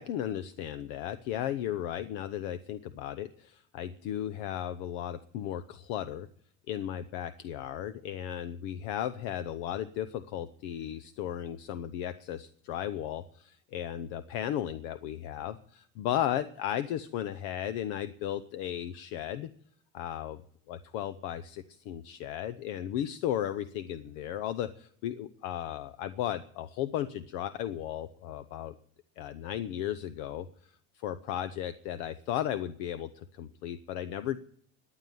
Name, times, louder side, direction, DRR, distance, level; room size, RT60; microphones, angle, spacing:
voice 1, 0.0-6.3 6.7-19.5 19.9-20.4 20.7-28.7 29.2-30.5 31.0-34.4, left 11 dB, 80° left, 14 dB, 0.8 m, -35 dB
14.5 x 10.0 x 9.3 m, 0.66 s
supercardioid pair, 90°, 37 cm